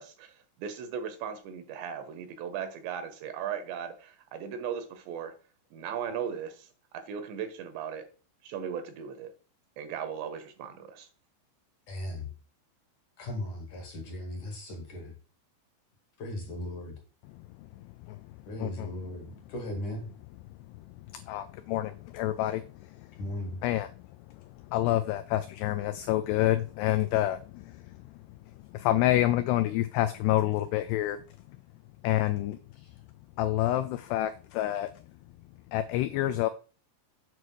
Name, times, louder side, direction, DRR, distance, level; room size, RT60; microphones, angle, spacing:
voice 1, 0.0-5.3 5.7-8.0 8.4-9.3 9.8-11.1, right 8 dB, 75° right, 3.1 m, -37 dB
voice 2, 11.9-12.3 13.2-15.1 16.2-16.9 18.5-20.1 23.2-23.6 32.8-32.9, left 1 dB, 55° left, 2.5 m, -37 dB
voice 3, 17.3-18.3 18.6-18.9 20.7-23.1 23.6-23.9 24.3-28.1 28.6-31.2 32.0-32.6 33.4-34.9 35.7-36.5, left 14 dB, 85° left, 2.4 m, -28 dB
8.2 x 4.8 x 6.2 m
omnidirectional pair, 5.3 m